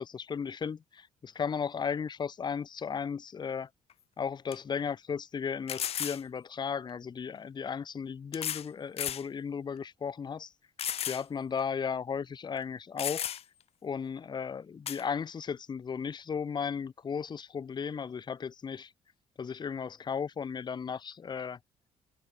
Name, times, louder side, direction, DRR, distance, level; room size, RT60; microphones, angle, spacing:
voice 1, 0.0-3.7 4.2-10.5 11.1-13.3 13.8-18.9 19.4-21.6, left 6 dB, 40° left, 1.2 m, -35 dB
sound 1, 3.9-4.0 4.5-4.6 5.7-6.2 7.4-7.5 8.3-8.7 9.0-9.3 9.8-9.9 10.8-11.2 11.6-11.7 12.6-12.7 13.0-13.6 14.9-15.0, left 10 dB, 55° left, 0.9 m, -34 dB
open air
cardioid pair, 95°, 12 cm